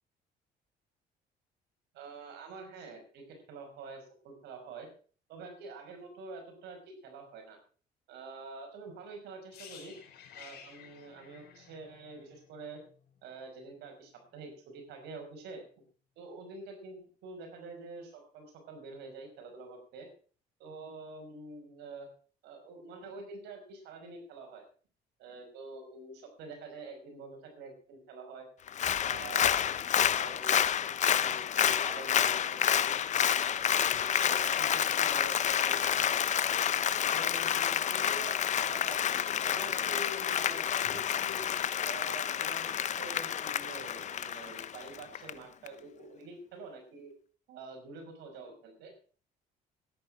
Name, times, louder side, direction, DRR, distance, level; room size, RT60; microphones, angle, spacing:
voice 1, 1.9-4.9 5.3-7.6 8.1-9.9 10.4-12.8 13.2-15.6 16.2-20.1 20.6-22.1 22.4-24.7 25.2-28.5 29.0-29.7 29.9-30.6 31.1-32.9 33.3-36.6 37.1-39.0 39.4-41.5 41.8-47.1 47.5-48.9, right 3 dB, 85° right, 4 dB, 5.5 m, -47 dB
sound 1, 9.5-13.4 13.6-13.8, left 8 dB, 75° left, 5.9 m, -53 dB
Applause, 28.7-45.3 45.7-45.8, left 9 dB, 45° left, 0.8 m, -29 dB
13.0 x 10.5 x 6.3 m, 0.41 s
cardioid pair, 110°, 17 cm